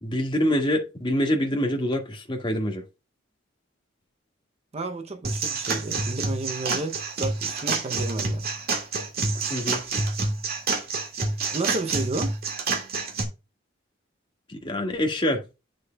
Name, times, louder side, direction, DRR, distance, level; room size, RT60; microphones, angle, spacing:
voice 1, 0.0-2.8 9.5-9.8 14.5-15.4, equal, 25° left, 1.8 m, -25 dB
voice 2, 4.7-8.5 11.5-12.4, right 2 dB, 35° right, 0.7 m, -32 dB
sound 1, 5.2-13.2, right 3 dB, 50° right, 2.0 m, -28 dB
9.3 x 6.5 x 2.3 m
head